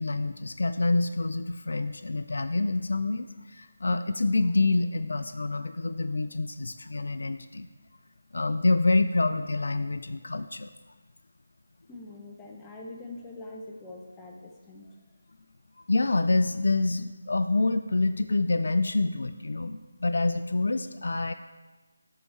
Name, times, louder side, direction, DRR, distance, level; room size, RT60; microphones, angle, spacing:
voice 1, 0.0-7.7 8.3-10.7 15.9-21.3, left 2 dB, 70° left, 11 dB, 0.3 m, -27 dB
voice 2, 11.9-14.9, left 2 dB, 10° left, -1 dB, 0.6 m, -43 dB
7.9 x 4.7 x 3.2 m, 1.3 s
figure-of-eight pair, 160°, 0 cm